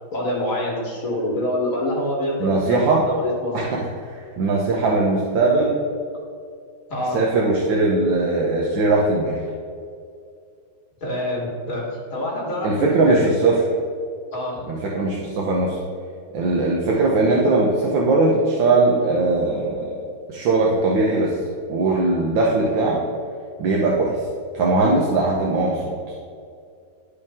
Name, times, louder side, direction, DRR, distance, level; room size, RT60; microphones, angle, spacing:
voice 1, 0.1-3.7 6.9-7.2 11.0-13.3 14.3-14.7, left 1 dB, 45° left, -4 dB, 2.1 m, -26 dB
voice 2, 2.4-3.0 3.5-5.7 7.1-9.4 12.6-13.6 14.7-15.8 16.3-21.3 21.7-23.0 23.6-24.1 24.5-26.1, right 3 dB, 80° right, -2 dB, 1.7 m, -20 dB
11.5 x 5.0 x 3.6 m, 2.3 s
omnidirectional pair, 2.1 m